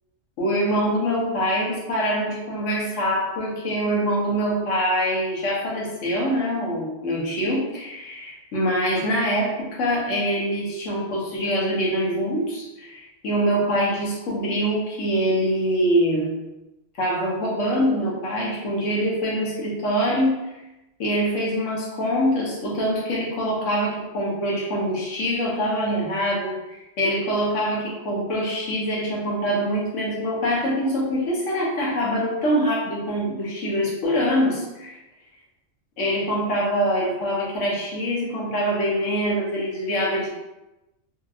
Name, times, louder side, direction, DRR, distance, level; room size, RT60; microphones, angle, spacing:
voice 1, 0.4-16.4 17.0-20.4 21.0-35.0 36.0-40.3, equal, 80° left, -4 dB, 1.2 m, -24 dB
2.8 x 2.7 x 2.4 m, 0.99 s
omnidirectional pair, 1.3 m